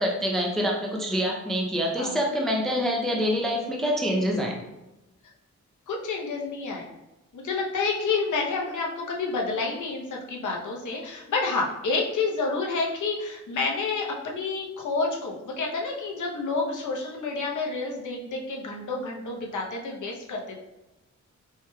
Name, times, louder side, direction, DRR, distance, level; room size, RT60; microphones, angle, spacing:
voice 1, 0.0-4.6, equal, ahead, -1 dB, 0.4 m, -26 dB
voice 2, 5.9-6.9 7.3-20.6, left 4 dB, 85° left, -1 dB, 0.8 m, -29 dB
4.6 x 3.1 x 2.2 m, 0.99 s
wide cardioid pair, 140°, 29 cm